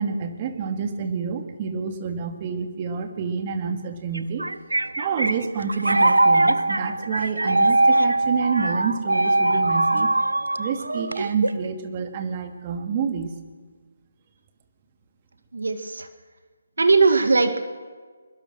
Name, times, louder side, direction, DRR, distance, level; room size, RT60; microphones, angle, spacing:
voice 1, 0.0-4.5 5.0-10.1 10.6-13.3, right 6 dB, 30° right, 6 dB, 2.2 m, -28 dB
sound 1, 4.1-11.7, right 2 dB, 90° right, 0.8 m, -21 dB
voice 2, 15.5-16.1 16.8-17.6, right 4 dB, 70° right, 8 dB, 2.0 m, -19 dB
22.5 x 21.0 x 6.3 m, 1.5 s
figure-of-eight pair, 150°, 0 cm